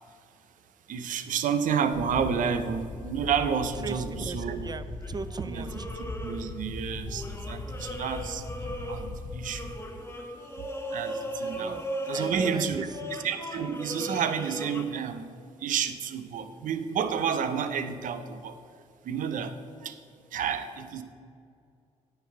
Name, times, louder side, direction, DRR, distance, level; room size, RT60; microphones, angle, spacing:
voice 1, 0.9-4.7 5.4-5.7 5.9-8.4 8.9-9.7 10.9-11.8 12.1-15.3 15.6-18.6 19.0-19.6 19.8-20.0 20.3-21.0, right 7 dB, 75° right, 10 dB, 0.6 m, -30 dB
sound 1, 1.9-9.7, left 2 dB, 50° left, 0.7 m, -39 dB
voice 2, 3.8-5.9 11.5-12.9, right 4 dB, 30° right, 13 dB, 0.5 m, -38 dB
sound 2, 5.0-6.8 7.1-14.8, equal, 20° left, 1.0 m, -37 dB
8.8 x 4.1 x 6.8 m, 2.3 s
supercardioid pair, 55°, 14 cm